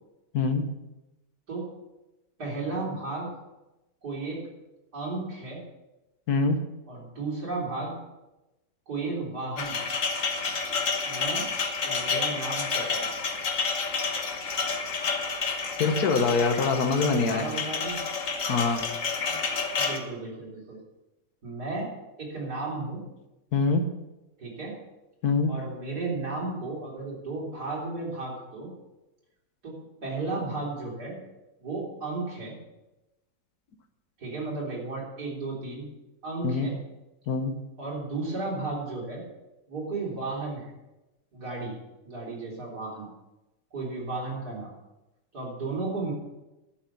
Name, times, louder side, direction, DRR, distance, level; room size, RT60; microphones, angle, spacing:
voice 1, 0.3-0.7 6.3-6.6 15.8-17.4 18.5-18.8 23.5-23.8 25.2-25.5 36.4-36.7 37.3-37.5, left 4 dB, 75° left, 7 dB, 1.8 m, -24 dB
voice 2, 2.4-3.3 4.0-4.4 4.9-5.6 6.9-8.0 8.9-9.8 11.0-11.5 11.8-13.2 17.2-18.0 19.8-20.8 21.4-21.9 22.2-23.0 24.4-24.8 25.5-28.7 29.6-31.2 31.6-32.6 34.2-35.9 36.2-36.8 37.8-39.2 39.7-40.7 41.3-41.7 42.0-43.1 43.7-44.7 45.3-46.1, right 3 dB, 80° right, -4 dB, 4.3 m, -34 dB
sound 1, 9.6-20.0, left 4 dB, 55° left, 1.6 m, -30 dB
11.5 x 8.2 x 6.1 m, 0.99 s
omnidirectional pair, 1.7 m